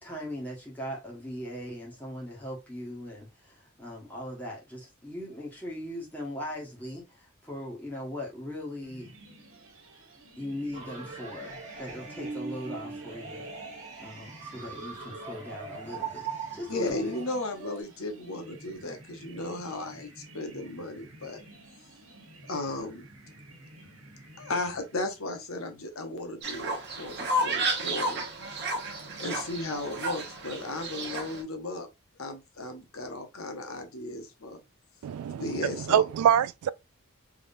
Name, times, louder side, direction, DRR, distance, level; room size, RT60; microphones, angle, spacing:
voice 1, 0.0-9.1 10.4-13.4 14.0-17.1, left 1 dB, 10° left, 1.5 m, -39 dB
sound 1, 8.8-25.4, right 1 dB, 65° right, 1.4 m, -52 dB
sound 2, 10.7-17.8, right 4 dB, 35° right, 1.3 m, -40 dB
voice 2, 16.7-21.4 22.5-23.0 24.4-28.2 29.2-31.9 32.2-34.6 35.4-36.0, left 2 dB, 70° left, 0.9 m, -35 dB
Fowl, 26.4-31.4, right 1 dB, 50° right, 1.2 m, -32 dB
voice 3, 35.0-36.7, right 9 dB, 90° right, 0.3 m, -25 dB
3.6 x 3.3 x 2.6 m
head